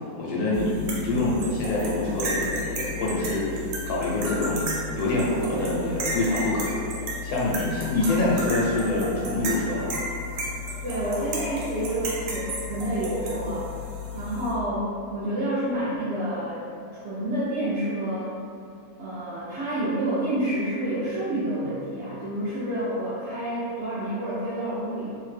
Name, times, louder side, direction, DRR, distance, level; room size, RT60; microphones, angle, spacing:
voice 1, 0.2-6.8 7.2-9.9, left 2 dB, 80° left, -5 dB, 1.1 m, -26 dB
sound 1, 0.5-14.5, left 1 dB, 85° right, 1.1 m, -33 dB
voice 2, 10.8-13.7 14.1-16.6 16.9-18.4 19.0-25.1, right 1 dB, 65° right, -9 dB, 0.7 m, -29 dB
2.8 x 2.1 x 3.2 m, 2.4 s
omnidirectional pair, 1.6 m